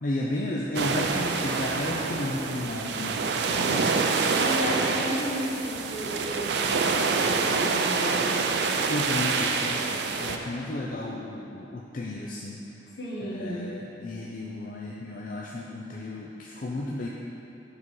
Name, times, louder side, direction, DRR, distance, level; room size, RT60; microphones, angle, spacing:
voice 1, 0.0-4.1 8.9-12.6 13.2-17.1, left 1 dB, 50° left, -3 dB, 0.5 m, -33 dB
sound 1, 0.7-10.4, right 4 dB, 65° right, 0.4 m, -26 dB
voice 2, 3.5-8.5 12.9-13.7, equal, 70° left, -5 dB, 1.3 m, -34 dB
7.4 x 4.1 x 4.7 m, 2.9 s
head